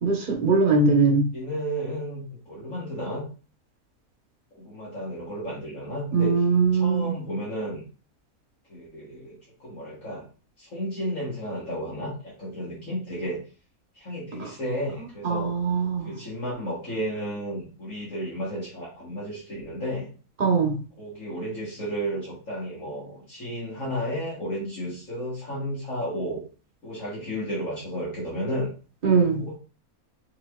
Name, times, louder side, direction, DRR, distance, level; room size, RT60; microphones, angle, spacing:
voice 1, 0.0-1.2 6.1-7.1 15.2-16.1 20.4-20.7 29.0-29.4, right 4 dB, 40° right, 1 dB, 1.1 m, -21 dB
voice 2, 1.3-3.3 4.5-6.4 6.7-7.8 8.7-10.2 10.6-13.4 13.9-15.5 16.0-20.1 21.0-26.4 26.8-28.7 29.4-29.6, equal, 60° left, -6 dB, 1.7 m, -33 dB
5.7 x 2.9 x 2.3 m, 0.37 s
omnidirectional pair, 1.5 m